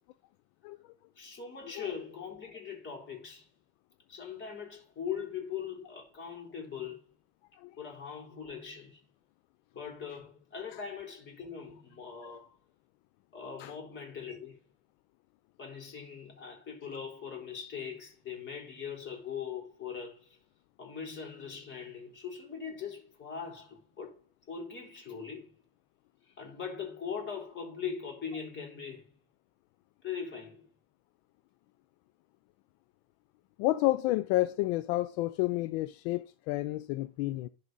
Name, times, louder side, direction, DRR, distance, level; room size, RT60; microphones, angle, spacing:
voice 1, 1.2-3.5 4.1-7.1 7.8-9.0 9.7-12.6 13.3-14.6 15.6-20.4 20.8-24.2 24.5-25.5 26.3-29.1 30.0-30.7, left 7 dB, 35° left, 3.7 m, -41 dB
voice 2, 33.6-37.5, left 17 dB, 80° left, 0.5 m, -30 dB
11.0 x 4.1 x 4.0 m
cardioid pair, 120°, 32 cm